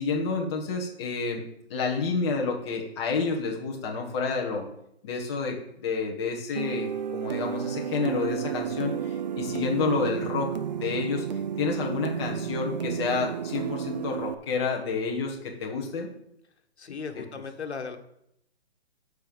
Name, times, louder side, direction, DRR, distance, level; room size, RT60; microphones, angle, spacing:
voice 1, 0.0-1.4 1.7-4.7 5.0-11.2 11.6-16.1, left 4 dB, 25° left, -1 dB, 1.6 m, -29 dB
sound 1, 6.5-14.3, right 8 dB, 40° right, 0.5 m, -32 dB
voice 2, 16.8-18.0, left 5 dB, 80° left, 6 dB, 1.7 m, -36 dB
11.5 x 4.5 x 7.1 m, 0.76 s
hypercardioid pair, 165°, 33 cm